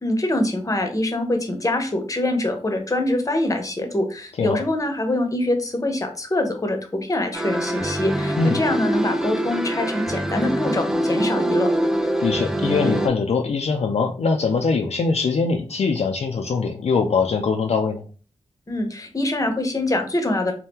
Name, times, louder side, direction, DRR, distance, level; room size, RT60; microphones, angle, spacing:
voice 1, 0.0-11.7 18.7-20.5, left 1 dB, 30° left, 6 dB, 0.8 m, -24 dB
sound 1, 7.3-13.1, right 1 dB, 5° right, 0.4 m, -24 dB
voice 2, 12.2-18.0, left 4 dB, 65° left, 3 dB, 0.4 m, -22 dB
2.8 x 2.2 x 3.5 m, 0.37 s
cardioid pair, 45°, 12 cm